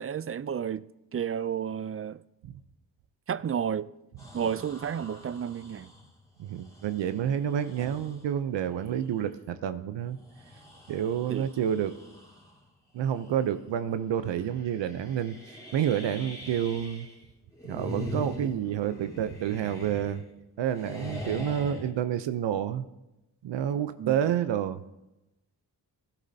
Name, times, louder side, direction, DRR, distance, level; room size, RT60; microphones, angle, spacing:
voice 1, 0.0-2.2 3.3-3.9 4.3-5.9 7.8-7.9 11.3-11.5 24.0-24.2, right 8 dB, 35° right, 0.4 m, -32 dB
sound 1, 4.2-8.3 8.9-9.0 10.0-12.6 13.0-13.4 13.7-13.8 14.4-17.2 17.5-20.4 20.7-21.9, left 1 dB, 10° left, 3.5 m, -43 dB
voice 2, 6.4-10.2 10.9-12.0 12.9-17.1 17.6-20.2 20.6-22.9 23.4-24.8, right 9 dB, 85° right, 0.7 m, -29 dB
16.5 x 11.5 x 2.7 m
cardioid pair, 65°, 42 cm